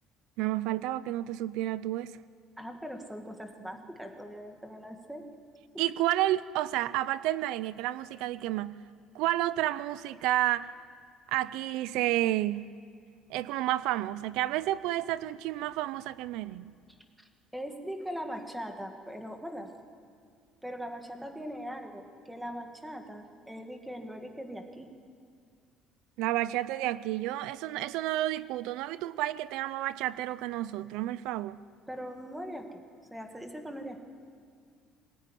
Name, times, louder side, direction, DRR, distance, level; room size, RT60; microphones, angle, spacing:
voice 1, 0.4-2.2 5.8-8.8 9.1-10.7 11.3-12.7 13.3-16.8 26.2-31.6, right 15 dB, 80° right, 0.5 m, -30 dB
voice 2, 2.6-5.2 16.9-19.7 20.6-24.9 31.9-32.8 33.1-34.0, equal, 5° right, 1.9 m, -41 dB
23.0 x 19.0 x 9.9 m
cardioid pair, 165°, 0 cm